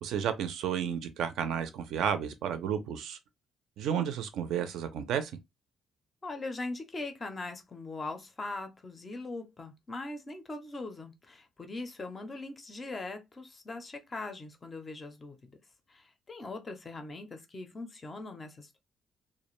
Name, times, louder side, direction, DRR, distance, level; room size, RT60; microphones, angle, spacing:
voice 1, 0.0-3.2 3.8-5.3, right 8 dB, 70° right, 0.4 m, -32 dB
voice 2, 6.2-15.6 15.9-18.8, left 2 dB, 20° left, 0.4 m, -41 dB
2.4 x 2.1 x 3.0 m
cardioid pair, 175°, 0 cm